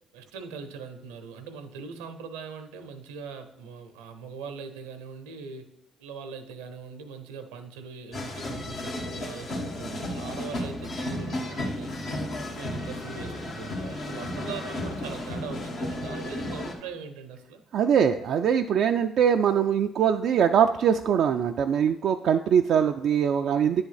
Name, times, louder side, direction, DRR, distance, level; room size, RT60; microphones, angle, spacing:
voice 1, 0.1-5.7 6.0-11.9 12.4-17.6, right 5 dB, 90° right, 8 dB, 0.7 m, -41 dB
sound 1, 8.1-16.7, left 1 dB, 65° left, 1.5 m, -33 dB
voice 2, 17.7-23.8, right 8 dB, 65° right, 5 dB, 0.3 m, -22 dB
9.1 x 3.5 x 5.7 m, 0.82 s
hypercardioid pair, 50°, 0 cm